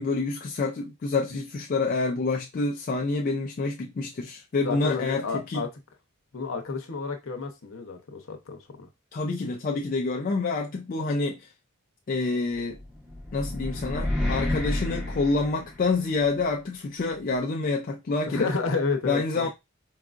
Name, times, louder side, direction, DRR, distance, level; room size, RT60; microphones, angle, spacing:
voice 1, 0.0-5.6 9.1-11.5 12.1-12.8 13.3-18.5 19.1-19.5, left 3 dB, 40° left, 0.3 m, -27 dB
voice 2, 4.6-5.7 6.3-8.9 18.3-19.5, left 4 dB, 65° left, 0.8 m, -30 dB
sound 1, 12.7-16.2, left 1 dB, 5° right, 0.9 m, -30 dB
4.6 x 2.4 x 2.4 m
head